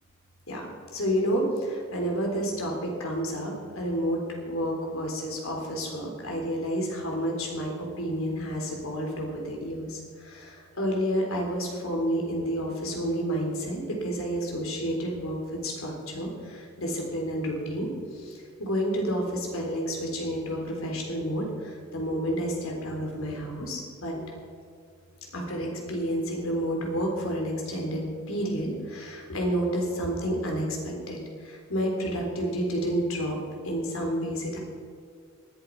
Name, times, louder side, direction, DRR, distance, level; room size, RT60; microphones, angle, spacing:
voice 1, 0.9-2.7 3.0-4.2 4.5-7.7 8.0-15.4 15.6-17.9 18.1-24.2 25.3-31.2 31.4-33.4 33.6-34.6, equal, 90° left, 0 dB, 3.7 m, -30 dB
18.5 x 11.5 x 4.8 m, 2.2 s
head